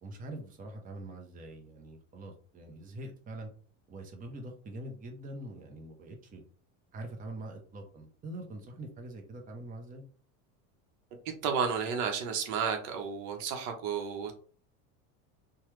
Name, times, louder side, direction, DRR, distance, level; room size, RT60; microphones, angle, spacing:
voice 1, 0.0-3.5 3.9-6.4 6.9-10.1, right 1 dB, 20° right, 2 dB, 0.6 m, -44 dB
voice 2, 11.2-14.3, right 6 dB, 65° right, 4 dB, 0.9 m, -32 dB
3.1 x 2.3 x 3.0 m, 0.43 s
supercardioid pair, 115°, 40 cm